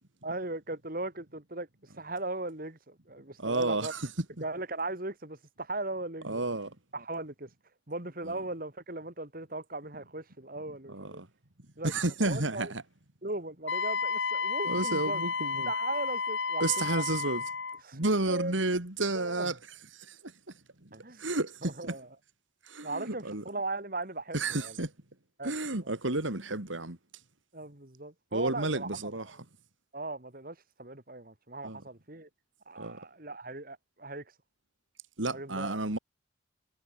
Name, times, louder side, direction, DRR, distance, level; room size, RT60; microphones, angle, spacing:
voice 1, 0.2-1.7 2.0-3.9 4.4-6.4 6.9-7.5 7.9-11.2 11.8-11.9 12.2-12.7 13.2-15.3 15.7-17.0 17.8-18.6 19.1-19.5 20.9-21.2 21.6-22.1 22.8-24.7 25.4-25.5 25.8-25.9 27.5-29.0 29.9-32.3 32.7-34.2 35.3-35.8, right 2 dB, 45° right, 2.7 m, -38 dB
voice 2, 3.4-4.1 6.2-6.7 8.2-8.4 10.9-11.3 11.8-12.8 14.6-15.7 16.6-17.4 17.9-19.6 19.9-20.2 20.8-20.9 21.2-21.9 22.7-23.4 24.3-24.9 25.4-27.0 28.3-29.3 31.6-31.8 32.8-33.0 35.2-36.0, right 2 dB, 80° right, 2.9 m, -31 dB
Wind instrument woodwind instrument, 13.7-17.8, left 5 dB, 70° left, 1.8 m, -32 dB
head